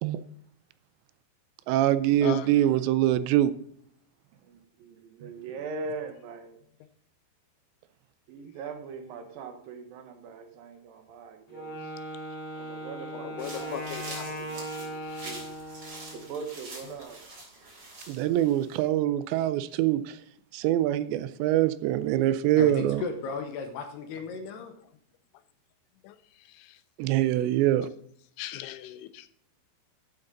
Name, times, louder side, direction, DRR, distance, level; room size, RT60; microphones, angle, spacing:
voice 1, 1.7-3.5 18.1-20.2 20.5-23.0 27.0-27.9, right 13 dB, 85° right, 14 dB, 2.7 m, -24 dB
voice 2, 2.2-2.7 3.2-3.3 12.6-12.7 13.1-15.5 18.1-18.3 18.8-18.9 24.6-24.9 26.0-27.2 28.4-29.3, left 12 dB, 90° left, 11 dB, 3.1 m, -41 dB
voice 3, 4.4-6.6 8.3-11.9 12.5-15.6 16.1-17.2, right 4 dB, 65° right, 7 dB, 2.5 m, -41 dB
Wind instrument woodwind instrument, 11.5-16.3, right 1 dB, 40° left, 5.0 m, -38 dB
sound 1, 13.4-18.8, right 2 dB, 30° right, 4.1 m, -45 dB
voice 4, 22.6-24.7, left 5 dB, 75° left, 5 dB, 3.0 m, -35 dB
12.0 x 7.9 x 3.9 m, 0.67 s
omnidirectional pair, 5.2 m